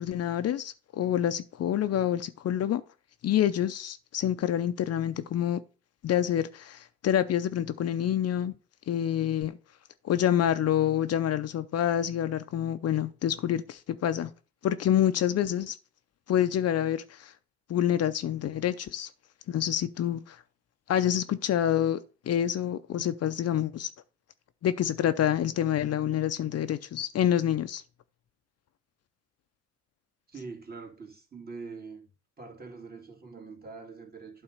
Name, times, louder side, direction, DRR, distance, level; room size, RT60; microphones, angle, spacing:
voice 1, 0.0-2.8 3.2-5.6 6.0-8.5 8.9-9.6 10.0-14.3 14.6-15.8 16.3-17.3 17.7-19.1 19.5-20.4 20.9-22.0 22.3-23.9 24.6-27.8, left 10 dB, 55° left, 0.6 m, -27 dB
voice 2, 30.3-32.1 32.4-34.4, right 4 dB, 30° right, 2.4 m, -44 dB
8.8 x 3.7 x 6.6 m
cardioid pair, 90°, 30 cm